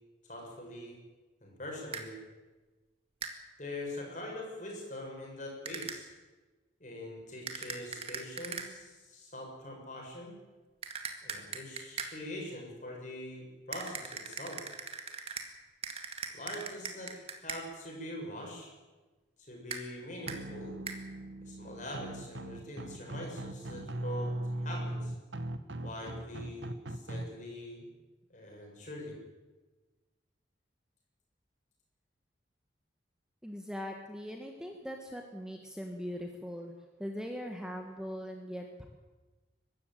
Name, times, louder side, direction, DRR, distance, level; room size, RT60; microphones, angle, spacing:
voice 1, 0.3-1.0 1.4-2.2 3.6-6.1 6.8-10.4 11.2-14.6 16.3-18.7 19.4-20.8 21.4-24.3 24.6-25.1 25.8-27.9 28.3-29.2, left 1 dB, 40° left, 0 dB, 7.0 m, -43 dB
sound 1, 1.9-2.1 3.2-3.4 5.6-6.0 7.5-8.7 10.8-12.1 13.7-15.5 15.8-17.6 19.7-19.8 20.3-20.4 20.9-21.0, right 5 dB, 30° right, 2.0 m, -40 dB
sound 2, 20.3-27.2, right 1 dB, 85° right, 1.4 m, -39 dB
voice 2, 33.4-36.7 37.0-38.9, equal, 5° right, 2 dB, 1.6 m, -40 dB
23.5 x 13.5 x 9.2 m, 1.2 s
head